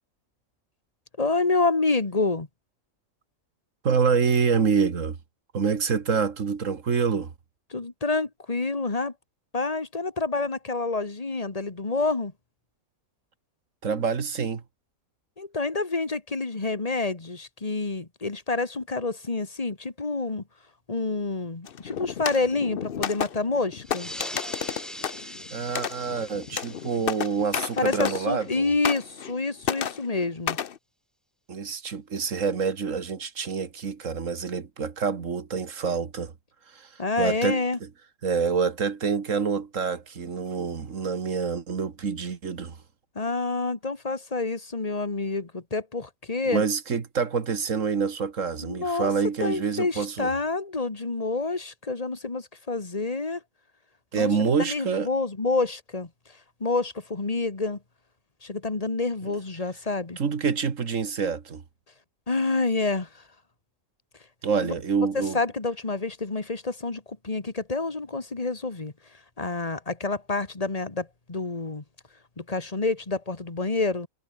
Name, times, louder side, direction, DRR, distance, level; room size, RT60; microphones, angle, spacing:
voice 1, 1.2-2.5 7.7-9.1 9.5-12.3 15.4-20.4 20.9-24.1 27.8-30.6 37.0-37.8 43.2-46.6 48.6-49.1 49.4-53.4 54.1-56.1 56.6-57.8 58.4-60.2 62.3-63.2 64.6-64.7 65.1-68.9 69.4-71.8 72.4-74.1, left 3 dB, 25° left, 1.9 m, -28 dB
voice 2, 3.8-5.2 5.5-7.3 13.8-14.6 25.2-28.7 31.5-36.3 36.7-37.9 38.2-42.8 46.4-50.3 54.1-55.1 59.2-59.3 60.2-61.6 64.4-65.4, right 5 dB, 65° right, 2.0 m, -27 dB
sound 1, 21.7-28.5 28.8-29.4 29.6-30.8, left 8 dB, 50° left, 0.8 m, -32 dB
sound 2, 23.8-28.9, equal, ahead, 4.6 m, -42 dB
omnidirectional pair, 1.4 m